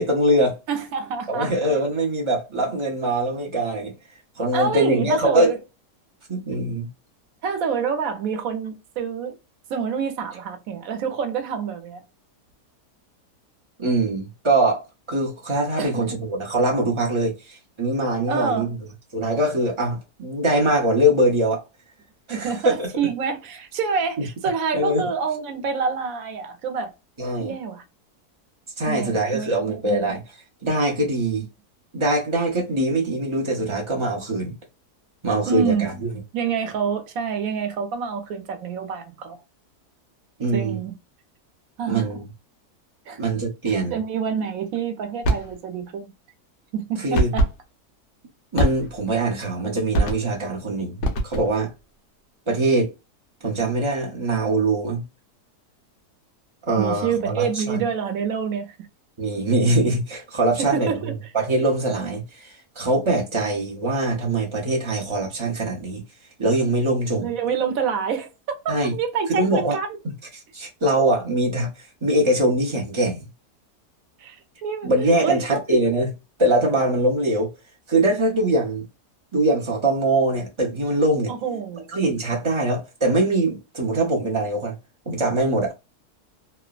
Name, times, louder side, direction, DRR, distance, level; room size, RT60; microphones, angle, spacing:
voice 1, 0.0-0.6 1.3-3.9 4.4-5.5 6.3-6.9 13.8-18.8 19.1-21.6 22.3-22.5 22.8-22.9 24.2-24.3 24.7-25.0 27.2-27.5 28.8-30.2 30.6-31.4 31.9-34.5 35.2-36.1 40.4-40.8 41.9-42.2 43.2-44.0 47.0-47.3 48.5-51.7 52.5-52.9 53.4-55.0 56.6-57.8 59.2-66.0 66.4-67.3 68.7-68.9 69.4-69.8 70.3-73.3 74.8-76.1 76.4-77.5 77.9-78.9 79.3-81.3 81.9-84.7 85.1-85.7, right 1 dB, 35° right, 0.5 m, -22 dB
voice 2, 0.7-1.5 4.5-5.6 7.4-9.4 9.7-12.0 15.8-16.2 18.3-18.7 22.3-26.9 27.4-27.8 28.9-30.1 35.4-35.9 36.3-39.4 40.5-40.9 41.8-42.1 43.1-43.2 43.7-46.1 46.7-47.5 56.8-58.8 60.6-61.2 67.2-70.0 74.2-74.4 74.6-74.9 75.2-75.6 81.3-82.0, right 6 dB, 70° right, 1.0 m, -27 dB
sound 1, 45.2-45.5 47.1-47.6 48.6-49.1 49.9-50.4 51.0-51.6, right 1 dB, 65° left, 1.2 m, -23 dB
3.1 x 2.0 x 2.3 m
omnidirectional pair, 1.7 m